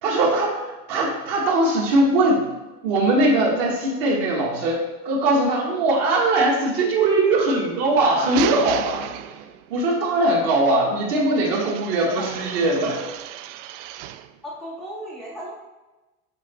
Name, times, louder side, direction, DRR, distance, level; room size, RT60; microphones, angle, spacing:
voice 1, 0.0-2.5 2.8-9.0 9.7-13.0, right 2 dB, 50° right, -1 dB, 1.8 m, -21 dB
sound 1, 7.9-9.8 11.4-14.3, right 12 dB, 90° right, 0.5 m, -33 dB
voice 2, 14.4-15.5, equal, ahead, -5 dB, 0.3 m, -35 dB
8.0 x 4.0 x 4.4 m, 1.1 s
cardioid pair, 175°, 35 cm